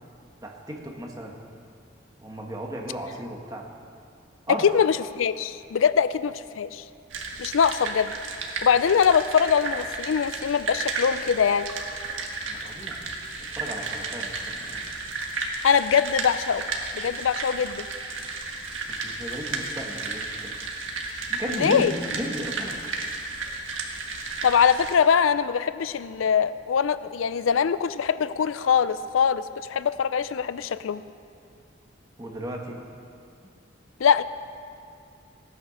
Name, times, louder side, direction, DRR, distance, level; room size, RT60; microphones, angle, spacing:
voice 1, 0.4-1.4 2.2-3.7 4.5-4.7 12.5-13.1 13.5-14.9 18.9-20.6 21.3-22.8 32.2-32.8, right 1 dB, 20° right, 1 dB, 1.5 m, -35 dB
voice 2, 4.5-6.8 7.4-8.1 8.6-11.7 15.6-16.6 16.9-17.9 21.6-21.9 24.4-31.0 34.0-34.2, left 7 dB, 85° left, 15 dB, 0.4 m, -22 dB
sound 1, 7.1-25.0, right 3 dB, 80° right, 1.6 m, -33 dB
16.0 x 9.7 x 6.4 m, 2.4 s
head